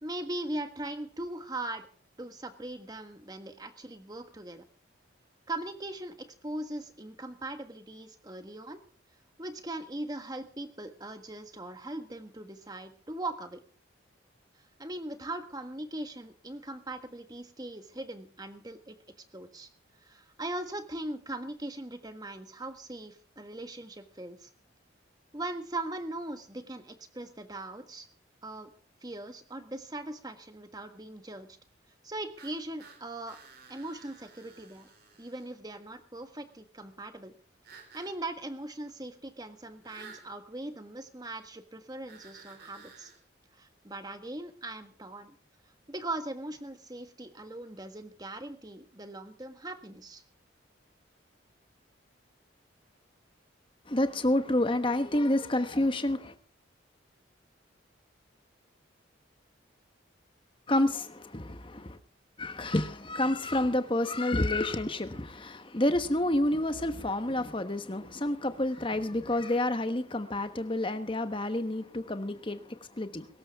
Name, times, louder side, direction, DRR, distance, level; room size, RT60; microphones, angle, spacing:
voice 1, 0.0-1.9 2.2-4.6 5.5-8.8 9.4-13.6 14.8-18.9 19.3-19.7 20.0-24.5 25.3-28.1 28.4-28.7 29.0-31.5 32.0-33.4 33.7-34.9 35.2-37.3 37.9-43.1 43.5-45.4 45.9-50.2, right 2 dB, 20° right, 7 dB, 1.5 m, -40 dB
sound 1, 32.4-35.5 37.6-38.1 39.8-40.3 42.1-43.2, right 5 dB, 50° right, 4.2 m, -53 dB
voice 2, 53.9-56.3 60.7-62.0 62.4-73.3, left 1 dB, 25° left, 9 dB, 1.2 m, -29 dB
23.0 x 13.5 x 3.6 m, 0.41 s
head